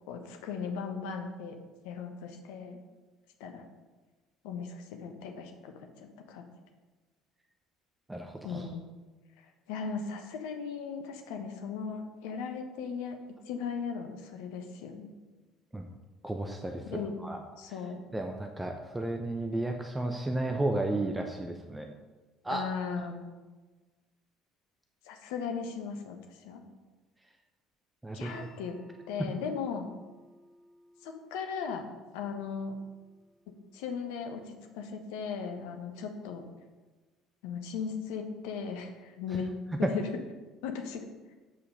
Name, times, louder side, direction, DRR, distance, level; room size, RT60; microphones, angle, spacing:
voice 1, 0.1-1.5 1.8-2.8 3.4-3.6 4.4-6.5 8.4-8.8 9.7-13.2 13.5-15.1 16.8-17.2 17.6-18.0 22.5-23.3 25.0-26.6 28.1-28.8 29.1-29.9 31.0-31.8 32.1-32.8 33.5-36.4 37.4-39.5 39.8-40.1 40.6-41.1, left 6 dB, 60° left, 4 dB, 1.1 m, -37 dB
voice 2, 8.1-8.7 15.7-15.9 16.2-16.8 17.2-17.4 18.1-21.9 22.4-22.7 28.0-28.5 39.8-39.9, right 2 dB, 10° right, 4 dB, 0.8 m, -33 dB
sound 1, 28.3-34.4, left 1 dB, 10° left, 2.8 m, -56 dB
8.3 x 5.6 x 5.4 m, 1.2 s
figure-of-eight pair, 60°, 0 cm